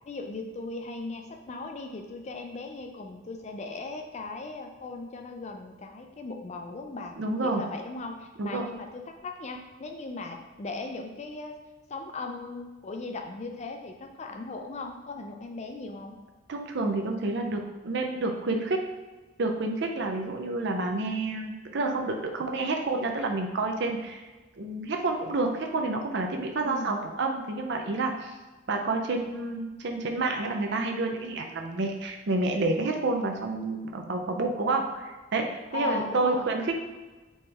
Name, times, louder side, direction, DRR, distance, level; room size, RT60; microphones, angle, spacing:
voice 1, 0.1-7.2 7.4-11.6 11.9-16.2 26.5-27.0 35.7-36.5, left 3 dB, 30° left, 4 dB, 0.4 m, -38 dB
voice 2, 7.2-7.6 8.4-8.7 16.5-18.8 19.4-24.3 24.6-28.3 28.7-36.8, right 2 dB, 55° right, 3 dB, 0.5 m, -29 dB
4.3 x 3.2 x 3.4 m, 1.2 s
head